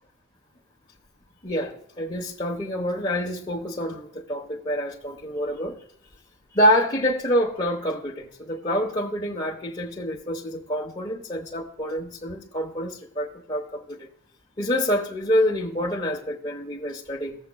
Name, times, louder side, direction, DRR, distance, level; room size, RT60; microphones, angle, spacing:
voice 1, 1.4-5.8 6.5-14.1 14.6-17.4, equal, 25° left, 0.9 m, -27 dB
16.0 x 7.4 x 2.3 m
head